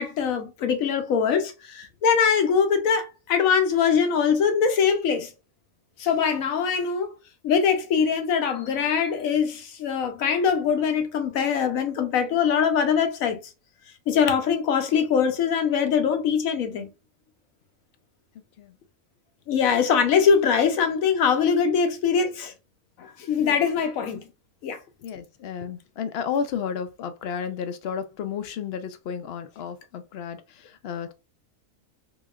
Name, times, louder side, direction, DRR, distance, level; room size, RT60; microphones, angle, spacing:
voice 1, 0.0-5.3 6.0-7.1 7.4-13.4 14.1-16.9 19.5-22.5 23.0-24.3 24.6-24.8, left 6 dB, 85° left, 1.1 m, -22 dB
voice 2, 25.0-31.1, left 7 dB, 65° left, 0.7 m, -32 dB
3.9 x 3.0 x 2.3 m
omnidirectional pair, 1.4 m